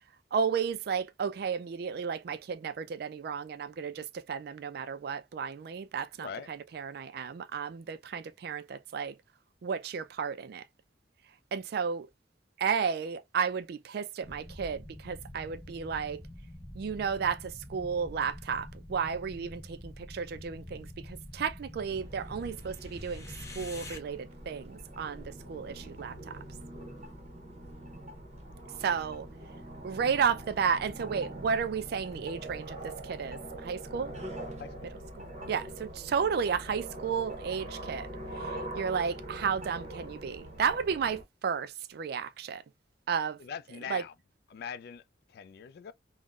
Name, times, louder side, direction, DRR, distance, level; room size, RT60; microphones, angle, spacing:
voice 1, 0.3-9.1 9.6-10.6 11.5-12.1 12.6-16.2 16.7-23.2 23.6-26.4 28.8-29.3 29.8-34.1 35.2-38.1 38.7-42.6 43.1-43.4 43.9-44.0, right 6 dB, 60° right, 0.3 m, -33 dB
sound 1, 14.2-24.0, left 1 dB, 20° left, 0.6 m, -46 dB
sound 2, 21.9-41.2, right 1 dB, 40° right, 0.9 m, -43 dB
voice 2, 34.6-34.9 43.4-44.1 44.5-45.0 45.3-45.9, left 7 dB, 60° left, 0.3 m, -42 dB
3.6 x 2.1 x 2.3 m
head